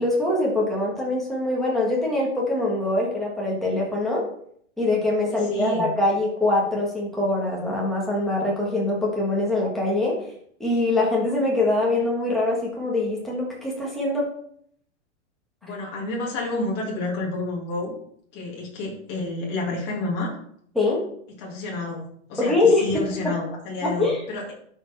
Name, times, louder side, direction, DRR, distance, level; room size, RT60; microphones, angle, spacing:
voice 1, 0.0-4.2 4.8-10.1 10.6-14.3 20.7-21.0 22.4-23.3 23.8-24.2, left 2 dB, ahead, -4 dB, 1.5 m, -23 dB
voice 2, 5.3-5.9 15.6-17.9 18.3-20.3 21.4-22.0 22.3-24.5, left 2 dB, 30° left, -2 dB, 2.3 m, -30 dB
12.0 x 4.4 x 3.4 m, 0.64 s
supercardioid pair, 170°, 38 cm